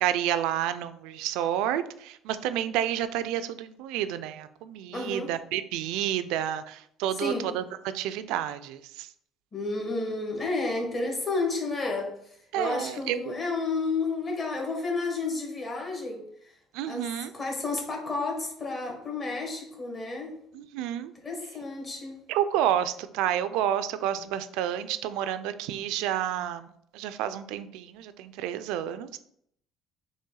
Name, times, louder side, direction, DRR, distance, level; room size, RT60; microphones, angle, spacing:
voice 1, 0.0-7.6 7.9-9.1 12.5-13.3 16.7-17.3 20.5-21.1 22.3-29.2, right 11 dB, 80° right, 12 dB, 0.3 m, -30 dB
voice 2, 4.9-5.3 7.1-7.6 9.5-16.3 16.9-20.4 21.2-22.2, left 3 dB, 35° left, 0 dB, 1.6 m, -31 dB
4.1 x 3.1 x 3.8 m, 0.70 s
supercardioid pair, 85°, 0 cm